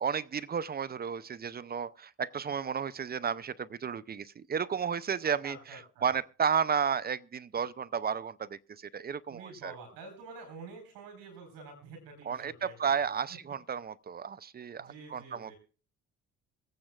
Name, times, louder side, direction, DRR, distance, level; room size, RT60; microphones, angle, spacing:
voice 1, 0.0-9.7 12.2-15.5, right 7 dB, 30° right, 0.5 m, -33 dB
voice 2, 5.2-6.2 9.3-13.1 14.8-15.6, right 4 dB, 75° right, 4.4 m, -48 dB
24.0 x 8.8 x 2.4 m
supercardioid pair, 65°, 34 cm